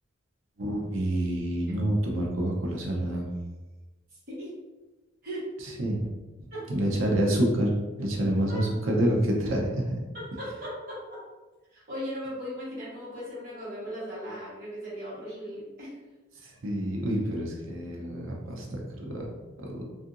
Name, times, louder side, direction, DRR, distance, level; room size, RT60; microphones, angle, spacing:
voice 1, 0.6-3.3 5.8-6.1 6.7-7.7 8.0-9.9 16.4-19.3 19.6-19.8, right 1 dB, 80° right, -1 dB, 0.6 m, -27 dB
voice 2, 10.1-11.2 11.7-16.0, equal, 50° right, -9 dB, 1.3 m, -38 dB
2.7 x 2.5 x 2.5 m, 1.2 s
head